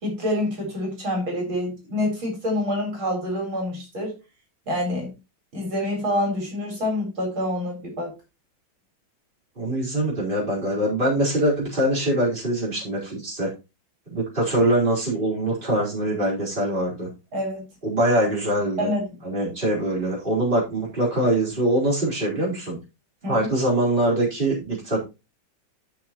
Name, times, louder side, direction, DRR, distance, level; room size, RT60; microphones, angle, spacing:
voice 1, 0.0-4.1 4.7-5.1 5.5-8.1 17.3-17.6 18.8-19.0 23.2-23.5, left 1 dB, 75° right, 0 dB, 5.0 m, -27 dB
voice 2, 9.6-13.5 14.1-17.1 17.8-18.9 19.2-22.8 23.3-25.0, right 1 dB, 25° right, -5 dB, 4.5 m, -23 dB
13.0 x 6.2 x 3.0 m, 0.26 s
omnidirectional pair, 2.3 m